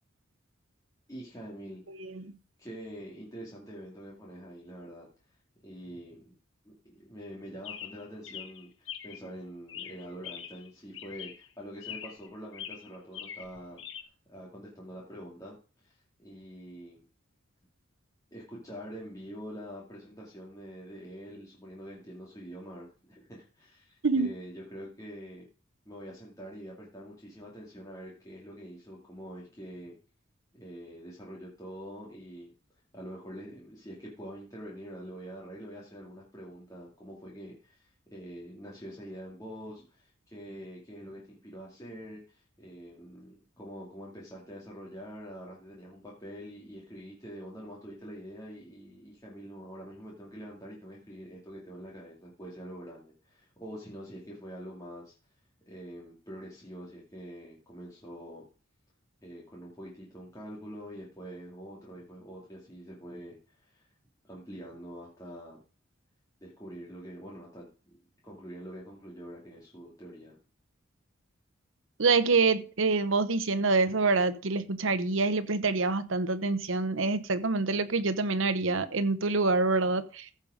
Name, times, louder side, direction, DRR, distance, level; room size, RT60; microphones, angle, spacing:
voice 1, 1.1-1.8 2.6-5.1 5.6-6.3 6.6-13.8 14.3-17.0 18.3-25.4 25.9-29.9 30.5-32.5 32.9-55.1 55.7-58.4 59.2-63.9 64.2-65.6 66.4-68.0 68.2-70.4, equal, 15° left, 2.6 m, -45 dB
voice 2, 1.9-2.3 24.0-24.3 72.0-80.3, right 3 dB, 75° right, 0.9 m, -26 dB
Chirp tweet, 7.6-9.3 9.7-10.7 10.9-11.5 11.8-12.3 12.5-14.0, left 9 dB, 65° left, 1.1 m, -43 dB
14.5 x 5.5 x 5.1 m
head